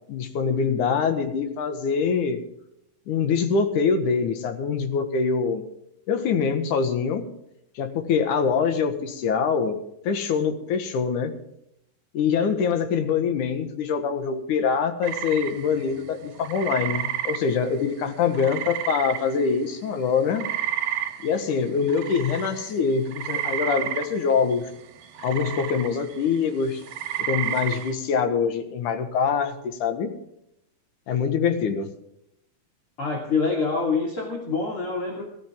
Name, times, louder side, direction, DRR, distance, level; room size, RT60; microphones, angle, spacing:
voice 1, 0.1-2.4 3.1-5.6 6.1-7.2 7.8-9.8 10.0-11.3 12.1-20.5 21.2-24.6 25.2-26.8 27.2-30.1 31.1-31.9, left 6 dB, 65° left, 7 dB, 2.9 m, -24 dB
sound 1, 15.0-19.7 20.0-27.9, right 11 dB, 80° right, 3.3 m, -32 dB
voice 2, 33.0-35.2, left 4 dB, 40° left, 0 dB, 3.2 m, -26 dB
18.5 x 14.0 x 3.7 m, 0.79 s
omnidirectional pair, 4.1 m